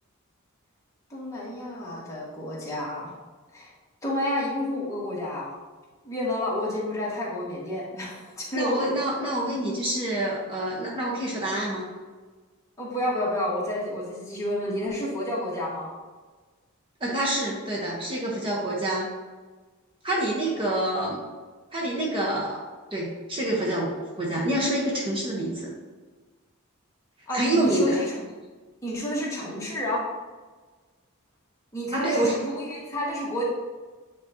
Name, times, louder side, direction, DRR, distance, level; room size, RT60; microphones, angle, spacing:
voice 1, 1.1-3.1 3.5-3.7 4.0-5.5 6.0-8.9 12.8-15.9 27.3-28.1 28.8-30.0 31.7-33.4, left 1 dB, 15° left, -6 dB, 1.7 m, -30 dB
voice 2, 8.5-11.9 17.0-19.1 20.0-21.2 21.7-22.6 22.9-25.7 27.3-28.0 31.9-32.4, right 1 dB, 25° right, -4 dB, 1.1 m, -27 dB
9.1 x 4.1 x 2.9 m, 1.4 s
head